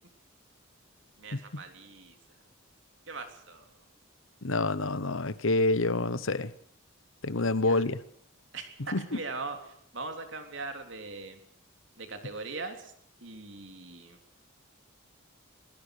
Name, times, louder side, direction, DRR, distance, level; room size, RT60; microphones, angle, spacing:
voice 1, 1.2-2.2 3.1-3.7 7.6-7.8 8.5-11.4 12.0-12.9 13.2-14.2, right 3 dB, 60° right, 3.6 m, -40 dB
voice 2, 4.4-6.5 7.2-8.0 8.9-9.0, left 2 dB, 70° left, 1.2 m, -27 dB
22.0 x 20.5 x 6.7 m
head